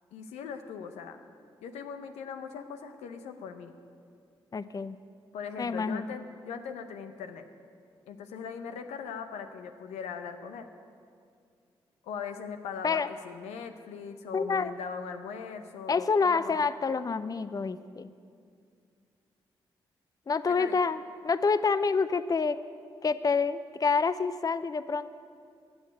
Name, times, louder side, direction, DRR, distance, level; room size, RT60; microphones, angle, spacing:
voice 1, 0.1-1.2 1.6-3.7 5.3-7.5 8.1-10.7 12.0-16.5 20.5-20.8, left 6 dB, 90° left, 7 dB, 0.7 m, -40 dB
voice 2, 4.5-5.0 5.6-6.0 12.8-13.1 14.3-14.7 15.9-18.1 20.3-22.6 23.0-25.1, left 5 dB, 35° left, 14 dB, 0.5 m, -27 dB
13.0 x 7.2 x 8.4 m, 2.3 s
supercardioid pair, 45°, 11 cm